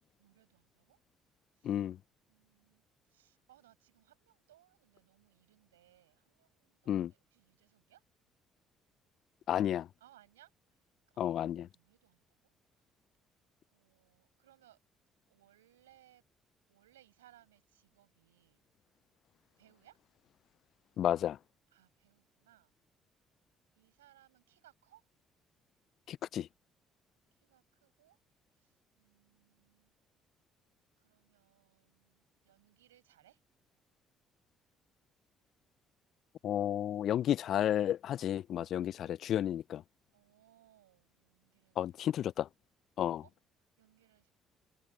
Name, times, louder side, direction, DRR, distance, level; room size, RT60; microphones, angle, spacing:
voice 1, 0.2-1.0 1.5-1.8 2.3-2.8 3.1-8.0 10.0-10.8 11.1-11.3 11.6-12.8 13.7-14.8 15.3-16.2 16.7-18.6 19.6-20.0 21.7-22.7 23.7-25.1 27.3-28.2 28.5-29.9 31.0-33.4 40.1-42.2 43.2-43.3 43.8-44.3, right 13 dB, 85° right, 6.2 m, -66 dB
voice 2, 1.6-2.0 6.9-7.1 9.5-9.9 11.2-11.7 21.0-21.4 26.1-26.5 36.4-39.8 41.8-42.5 43.0-43.2, left 11 dB, 60° left, 0.4 m, -32 dB
hypercardioid pair, 50°, 0 cm